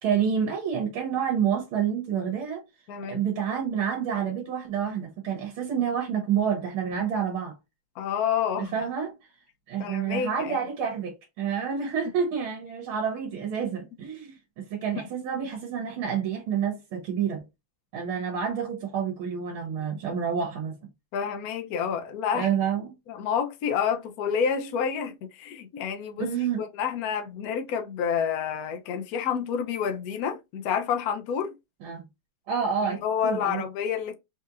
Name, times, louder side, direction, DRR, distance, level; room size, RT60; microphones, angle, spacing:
voice 1, 0.0-2.6 3.1-7.5 8.6-9.1 9.7-17.4 17.9-20.8 22.3-22.9 26.2-26.6 31.8-32.0 32.5-33.6, right 7 dB, 75° right, 1.8 m, -28 dB
voice 2, 2.9-3.2 8.0-8.7 9.8-10.6 21.1-22.5 23.1-26.3 26.6-31.6 32.9-34.2, left 7 dB, 75° left, 0.8 m, -29 dB
4.2 x 2.8 x 2.4 m
omnidirectional pair, 2.4 m